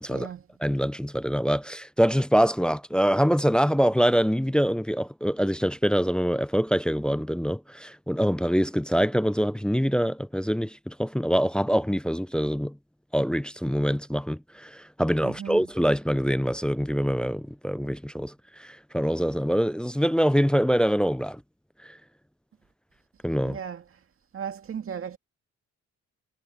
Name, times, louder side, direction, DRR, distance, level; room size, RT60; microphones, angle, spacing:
voice 1, 0.1-0.4 15.2-15.6 23.4-23.8 24.3-25.2, right 8 dB, 45° right, 1.8 m, -35 dB
voice 2, 0.6-12.8 13.1-18.3 18.6-21.4 21.8-21.9 23.2-23.6, equal, 5° left, 0.4 m, -24 dB
cardioid pair, 90°, 30 cm